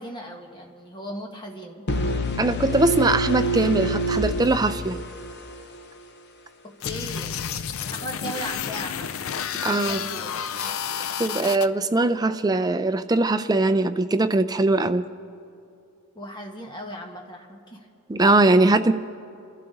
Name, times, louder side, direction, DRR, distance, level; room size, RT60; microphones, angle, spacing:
voice 1, 0.0-1.9 6.6-7.3 7.9-9.1 9.7-10.3 16.1-17.9, equal, 20° left, 1 dB, 1.7 m, -37 dB
sound 1, 1.9-5.8, equal, 50° left, 0.9 m, -26 dB
voice 2, 2.4-5.0 9.6-10.0 11.2-15.0 18.1-18.9, right 2 dB, 20° right, 9 dB, 0.5 m, -21 dB
sound 2, 6.8-11.7, left 8 dB, 70° left, 0.5 m, -30 dB
29.5 x 11.5 x 3.9 m, 2.6 s
head